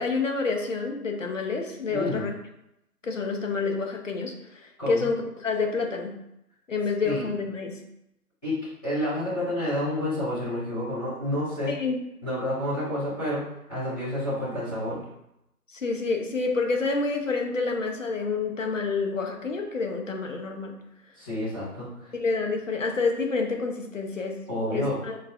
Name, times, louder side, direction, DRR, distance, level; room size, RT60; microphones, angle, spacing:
voice 1, 0.0-2.3 3.0-6.2 6.7-7.8 11.7-12.0 15.7-20.8 22.1-25.2, left 4 dB, 55° left, 2 dB, 0.7 m, -28 dB
voice 2, 1.9-2.2 4.8-5.0 7.0-7.3 8.4-8.6 8.8-11.7 12.2-13.4 13.7-15.0 21.2-22.1 24.5-25.0, left 1 dB, 5° left, -17 dB, 1.3 m, -29 dB
5.4 x 2.4 x 2.4 m, 0.83 s
figure-of-eight pair, 155°, 47 cm